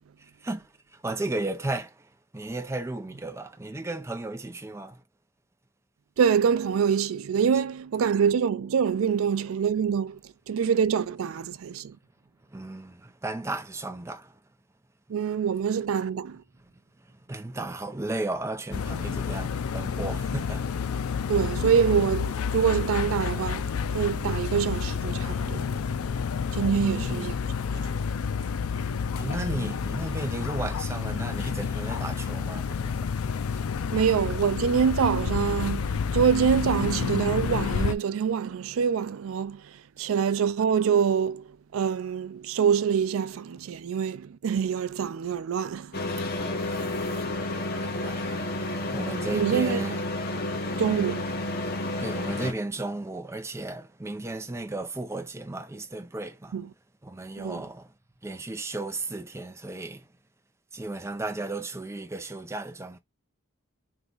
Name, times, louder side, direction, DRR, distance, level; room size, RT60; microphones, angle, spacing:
voice 1, 0.2-5.0 12.5-14.4 17.0-20.7 26.8-27.3 29.1-33.1 33.8-34.0 47.8-48.3 48.6-50.0 52.0-56.5 57.0-57.9 58.2-60.1 60.7-63.0, right 2 dB, 15° right, 0.5 m, -35 dB
voice 2, 6.2-12.0 15.1-16.4 21.3-25.8 26.5-27.4 27.9-28.1 33.9-46.0 49.3-49.9 50.7-51.3 56.5-56.7 57.4-57.6, right 7 dB, 75° right, 0.4 m, -25 dB
sound 1, 18.7-37.9, left 6 dB, 90° left, 0.5 m, -29 dB
sound 2, 45.9-52.5, left 2 dB, 45° left, 1.1 m, -30 dB
3.5 x 3.0 x 3.8 m
head